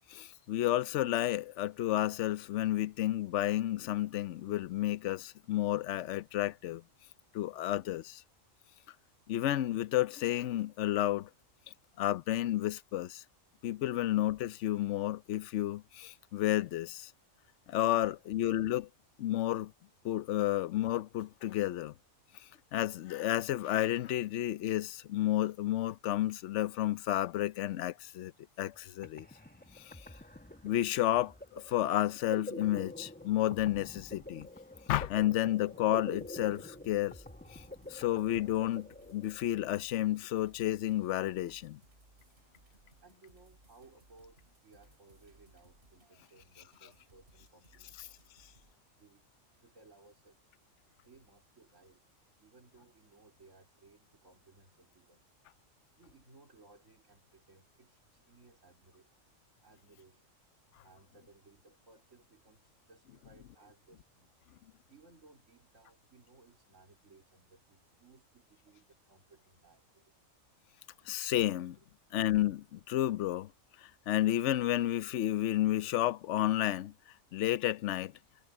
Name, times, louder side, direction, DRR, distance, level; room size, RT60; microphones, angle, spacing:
voice 1, 0.1-6.8 7.3-8.2 9.3-11.3 12.0-13.2 13.6-17.1 17.7-18.9 19.2-19.7 20.0-21.9 22.7-28.3 28.6-29.3 29.8-30.0 30.6-34.5 34.9-37.2 37.5-37.6 37.9-41.8 71.1-71.8 72.1-73.5 73.8-76.9 77.3-78.1, left 13 dB, 65° left, 0.9 m, -31 dB
voice 2, 17.7-18.3 43.0-48.3 48.9-49.3 49.6-50.5 51.0-52.0 52.4-55.2 55.5-55.7 56.0-59.1 59.6-60.4 60.8-64.3 64.9-70.1 71.8-71.9, right 3 dB, 70° right, 4.2 m, -62 dB
sound 1, 28.7-28.8 29.0-39.6, left 1 dB, 10° left, 1.0 m, -47 dB
sound 2, 36.1-48.7, right 2 dB, 50° right, 3.9 m, -64 dB
omnidirectional pair, 1.4 m